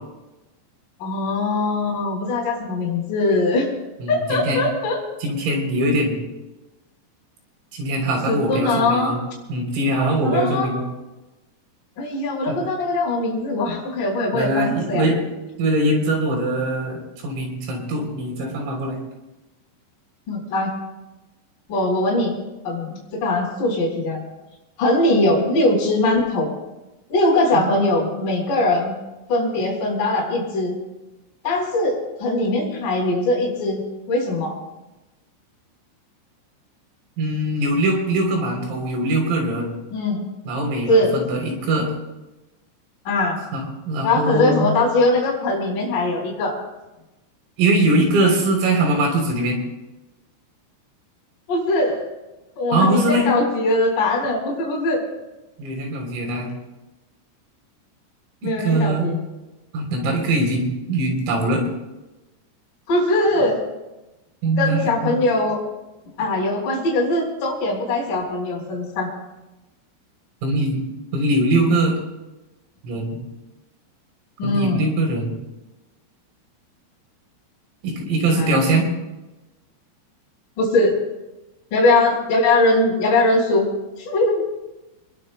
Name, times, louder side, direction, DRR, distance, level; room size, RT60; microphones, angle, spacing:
voice 1, 1.0-3.7 4.1-5.0 8.3-9.1 10.2-10.7 12.0-15.0 20.3-20.7 21.7-22.4 22.6-24.2 24.8-26.5 27.1-28.9 29.3-30.7 31.4-34.6 39.9-40.2 40.9-41.1 43.1-43.4 44.0-46.6 51.5-52.0 52.6-55.0 58.4-59.2 62.9-63.6 64.6-65.6 66.2-69.1 74.4-74.9 78.3-78.6 80.6-80.9 81.7-83.7 84.0-84.4, left 2 dB, 40° left, -5 dB, 5.5 m, -21 dB
voice 2, 4.0-4.7 5.2-6.2 7.7-9.2 9.5-10.8 12.5-12.6 14.3-15.3 15.6-19.0 27.5-27.7 37.2-39.8 40.5-41.9 43.5-44.7 47.6-49.6 52.7-53.3 55.6-56.5 58.4-59.1 59.7-61.7 64.4-65.1 70.4-70.9 71.1-71.9 72.8-73.2 74.4-75.4 77.8-78.9, right 1 dB, 75° right, 1 dB, 6.0 m, -22 dB
27.5 x 21.0 x 2.2 m, 1.0 s
omnidirectional pair, 5.9 m